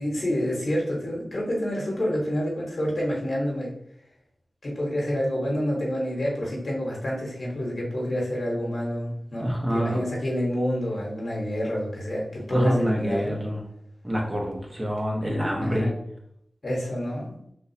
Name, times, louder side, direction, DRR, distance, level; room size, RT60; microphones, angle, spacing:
voice 1, 0.0-3.7 4.6-13.4 15.6-15.9 16.6-17.4, equal, 65° left, -3 dB, 1.3 m, -28 dB
voice 2, 9.4-10.0 12.5-13.6 14.0-15.9, equal, 30° right, -1 dB, 0.8 m, -26 dB
3.6 x 2.7 x 2.7 m, 0.73 s
wide cardioid pair, 55°, 0 cm